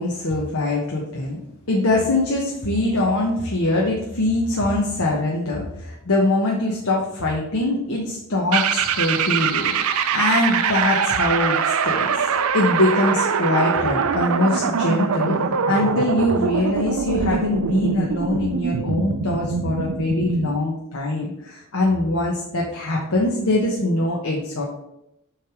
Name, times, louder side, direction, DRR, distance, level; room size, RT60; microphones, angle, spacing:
voice 1, 0.0-1.4 1.7-12.2 12.5-15.4 15.7-24.6, left 2 dB, 80° left, -2 dB, 1.0 m, -22 dB
sound 1, 8.5-20.6, right 6 dB, 90° right, 0.5 m, -23 dB
7.6 x 3.4 x 4.8 m, 0.83 s
head